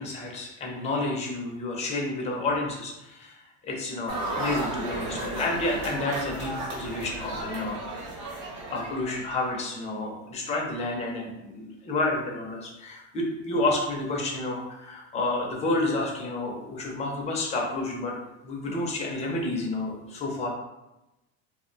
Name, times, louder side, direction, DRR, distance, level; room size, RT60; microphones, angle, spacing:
voice 1, 0.0-3.4 3.6-7.8 8.7-18.1 18.4-20.5, left 2 dB, 20° left, -1 dB, 0.4 m, -30 dB
sound 1, 4.1-9.7, right 2 dB, 45° right, 0.6 m, -34 dB
2.6 x 2.0 x 2.5 m, 0.96 s
supercardioid pair, 130°, 39 cm